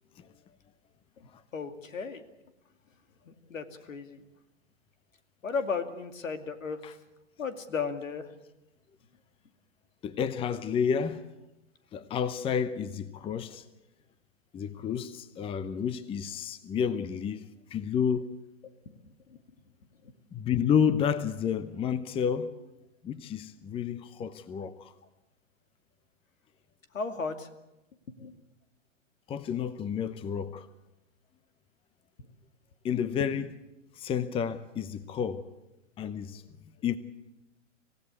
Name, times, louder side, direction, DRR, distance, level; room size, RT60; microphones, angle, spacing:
voice 1, 1.5-2.2 3.3-4.2 5.4-6.8 7.4-8.3 18.6-18.7 26.9-27.5 28.2-28.3, left 5 dB, 85° left, 2.5 m, -34 dB
voice 2, 10.0-11.2 11.9-13.6 14.5-17.5 17.7-18.3 20.3-22.5 23.0-24.9 29.3-30.7 32.8-33.5 34.0-35.5 36.0-36.4 36.8-37.0, left 7 dB, 15° left, 0.8 m, -30 dB
26.5 x 16.5 x 8.4 m
hypercardioid pair, 125°, 38 cm